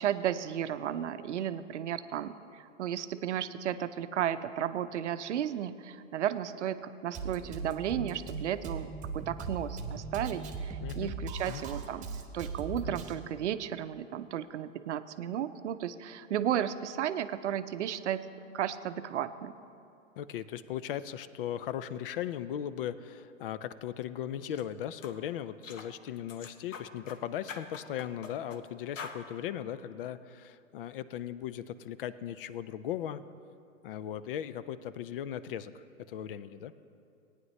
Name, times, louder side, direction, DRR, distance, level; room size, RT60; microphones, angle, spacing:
voice 1, 0.0-12.1 12.3-18.2 18.5-19.6, right 10 dB, 60° right, 12 dB, 0.6 m, -34 dB
Drum kit, 7.1-13.1, right 4 dB, 20° right, 1.1 m, -39 dB
voice 2, 10.8-11.1 11.5-11.6 20.2-33.2 33.8-36.7, left 10 dB, 45° left, 15 dB, 0.5 m, -38 dB
sound 1, 24.4-24.6 25.0-25.2 25.6-25.9 26.3-27.2 27.5-28.6 29.0-29.2, left 5 dB, 75° left, 1.1 m, -44 dB
18.0 x 9.6 x 3.2 m, 2.5 s
figure-of-eight pair, 110°, 39 cm